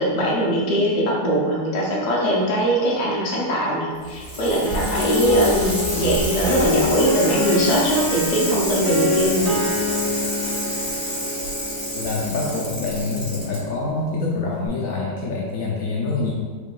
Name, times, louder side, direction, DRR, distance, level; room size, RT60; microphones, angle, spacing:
voice 1, 0.0-9.6, right 1 dB, 50° left, -4 dB, 0.5 m, -21 dB
Bicycle, 4.0-13.6 14.7-14.8, equal, 30° left, 1.7 m, -28 dB
sound 1, 4.7-14.3, left 2 dB, 55° right, 0.9 m, -26 dB
voice 2, 11.9-16.3, left 3 dB, 70° left, -3 dB, 0.8 m, -26 dB
3.6 x 2.6 x 3.8 m, 1.5 s
omnidirectional pair, 1.8 m